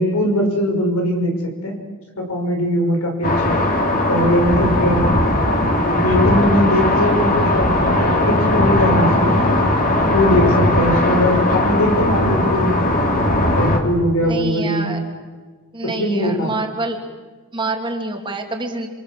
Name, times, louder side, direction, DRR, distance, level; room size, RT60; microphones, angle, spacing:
voice 1, 0.0-1.8 2.2-3.6 4.1-5.1 5.6-9.4 10.1-12.9 13.5-15.0 15.8-16.5, left 1 dB, 80° left, 2 dB, 6.2 m, -20 dB
sound 1, 3.2-13.8, left 1 dB, 40° left, 3.6 m, -18 dB
voice 2, 14.2-15.0 15.7-17.0 17.5-18.9, right 2 dB, 20° right, 3 dB, 3.0 m, -26 dB
28.0 x 26.0 x 7.7 m, 1.4 s
head